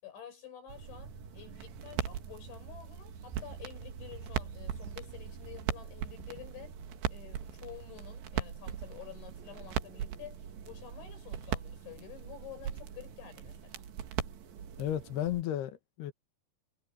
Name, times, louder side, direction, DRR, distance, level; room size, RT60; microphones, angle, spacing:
voice 1, 0.0-6.8 7.1-13.8, left 9 dB, 85° left, 9.0 m, -50 dB
sound 1, 0.7-15.4, right 6 dB, 55° right, 2.2 m, -47 dB
sound 2, 1.5-15.0, right 9 dB, 75° right, 3.8 m, -40 dB
voice 2, 14.8-16.1, left 12 dB, 70° left, 3.3 m, -33 dB
omnidirectional pair, 5.2 m